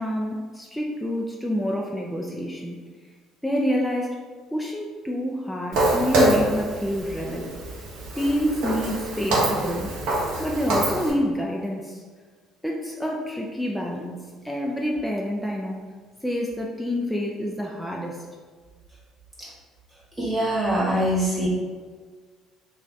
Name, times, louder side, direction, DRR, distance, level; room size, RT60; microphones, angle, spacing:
voice 1, 0.0-2.8 3.4-4.2 4.5-7.5 8.2-9.9 10.4-12.0 12.6-14.2 14.4-15.8 16.2-18.2, equal, 5° left, -2 dB, 0.5 m, -27 dB
Walk footsteps, 5.7-11.1, right 1 dB, 70° right, 0.8 m, -25 dB
voice 2, 20.2-21.5, right 1 dB, 20° right, -7 dB, 1.1 m, -23 dB
3.1 x 2.4 x 3.9 m, 1.5 s
hypercardioid pair, 55°, 0 cm